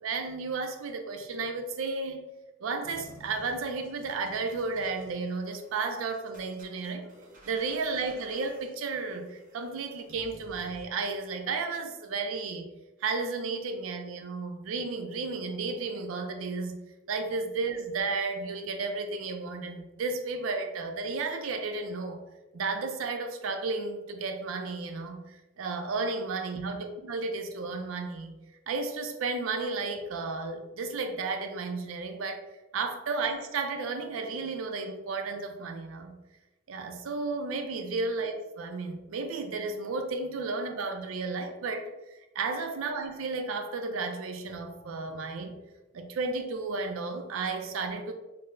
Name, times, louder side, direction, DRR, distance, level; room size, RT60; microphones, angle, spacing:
voice 1, 0.0-2.3 2.6-7.1 7.4-12.7 13.0-16.8 17.1-22.2 22.5-28.4 28.7-32.5 32.7-36.2 36.7-45.6 45.9-48.1, right 4 dB, 85° right, 6 dB, 0.4 m, -33 dB
sound 1, 2.8-10.8, right 1 dB, 40° right, 0.7 m, -53 dB
4.2 x 2.0 x 2.5 m, 1.1 s
head